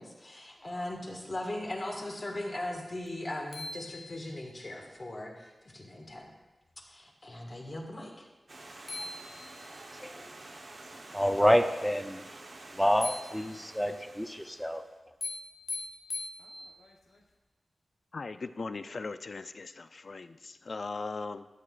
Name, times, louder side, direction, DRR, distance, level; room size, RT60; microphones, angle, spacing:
voice 1, 0.0-6.3 6.9-8.3, left 1 dB, 40° left, 0 dB, 1.7 m, -39 dB
sound 1, 3.1-3.2 3.5-4.6 8.5-8.6 8.9-9.9 13.0-13.9 15.2-16.9, left 2 dB, 85° left, 1.0 m, -41 dB
Stream, 8.5-14.9, right 2 dB, 55° right, 1.0 m, -49 dB
voice 2, 11.1-12.2 12.7-14.8, equal, 5° left, 7 dB, 0.5 m, -27 dB
voice 3, 18.1-21.5, left 3 dB, 60° left, 11 dB, 0.4 m, -39 dB
13.0 x 8.4 x 2.5 m, 1.2 s
wide cardioid pair, 95°, 0 cm